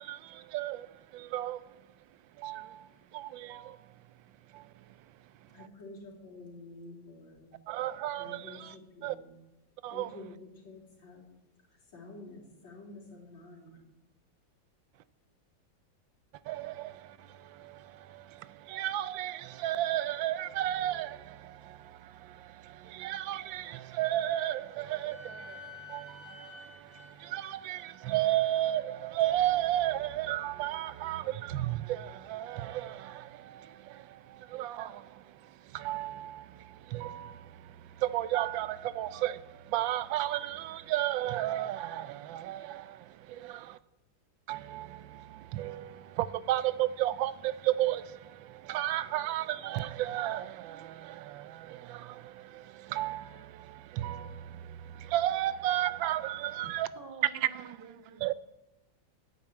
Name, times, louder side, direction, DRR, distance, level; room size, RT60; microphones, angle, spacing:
voice 1, 0.0-1.9 2.4-3.9 4.5-4.9 5.4-5.5 7.7-8.7 9.0-9.1 9.8-10.1 16.4-43.8 44.5-56.9 57.4-57.8 58.2-58.3, right 13 dB, 85° right, 1.3 m, -34 dB
voice 2, 5.5-7.5 8.2-9.4 9.9-11.3 11.7-13.7, left 2 dB, 85° left, 4.0 m, -49 dB
Wind instrument woodwind instrument, 24.1-28.5, left 3 dB, ahead, 2.2 m, -51 dB
voice 3, 56.6-58.3, right 4 dB, 35° right, 1.4 m, -49 dB
11.0 x 8.7 x 8.8 m
omnidirectional pair, 2.1 m